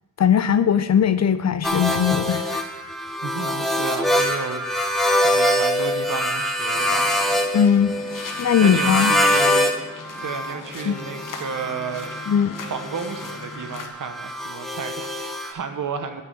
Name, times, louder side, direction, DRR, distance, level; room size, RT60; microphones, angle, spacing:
voice 1, 0.2-2.6 7.5-7.9 8.4-9.1 10.9-11.0 12.3-12.6, left 8 dB, 55° left, 13 dB, 0.5 m, -19 dB
sound 1, 1.6-9.8 10.1-15.5, left 1 dB, ahead, 1.0 m, -24 dB
voice 2, 3.1-4.7 5.2-7.2 8.6-9.7 10.2-12.1 12.7-16.2, right 6 dB, 75° right, 7 dB, 1.0 m, -32 dB
sound 2, 6.7-13.9, left 4 dB, 85° left, 1.0 m, -39 dB
6.6 x 6.1 x 7.4 m, 1.1 s
wide cardioid pair, 80°, 31 cm